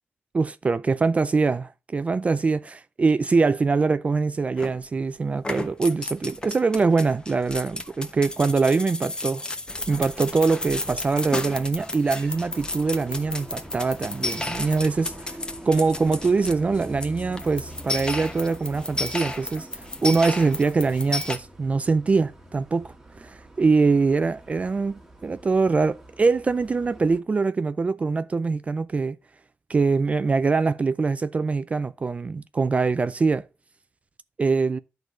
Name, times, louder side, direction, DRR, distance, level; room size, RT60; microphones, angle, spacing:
voice 1, 0.3-9.4 9.9-15.4 15.7-29.2 29.7-33.5 34.4-34.8, right 4 dB, 30° right, 0.4 m, -23 dB
sound 1, 4.6-5.0 5.4-21.4, left 2 dB, 20° left, 1.1 m, -33 dB
sound 2, 12.3-27.2, right 1 dB, 10° right, 1.6 m, -44 dB
11.0 x 4.0 x 6.0 m
wide cardioid pair, 125°, 4 cm